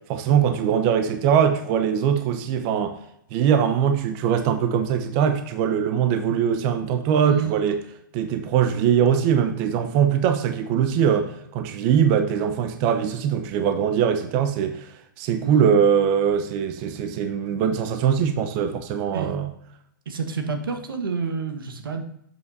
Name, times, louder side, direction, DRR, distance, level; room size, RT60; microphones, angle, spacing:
voice 1, 0.1-2.9 3.3-7.8 8.1-14.9 15.2-19.5, right 8 dB, 35° right, 7 dB, 0.7 m, -21 dB
voice 2, 7.2-7.5 15.4-15.6 19.1-19.3 20.1-22.0, right 6 dB, 85° right, 6 dB, 1.3 m, -28 dB
7.8 x 7.7 x 2.7 m, 0.74 s
hypercardioid pair, 140°, 11 cm